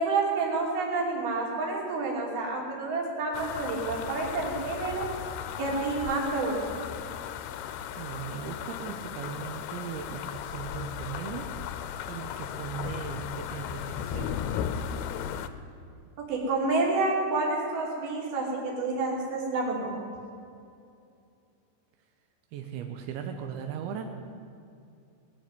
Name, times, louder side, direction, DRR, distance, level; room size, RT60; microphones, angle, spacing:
voice 1, 0.0-5.1 5.6-6.9 16.2-19.9, right 3 dB, 60° right, -2 dB, 4.5 m, -29 dB
sound 1, 3.3-15.5, left 9 dB, 80° left, 2.4 m, -36 dB
voice 2, 8.0-11.5 12.1-14.4 22.5-24.0, right 7 dB, 90° right, 4 dB, 3.2 m, -38 dB
20.5 x 7.0 x 9.7 m, 2.5 s
omnidirectional pair, 5.1 m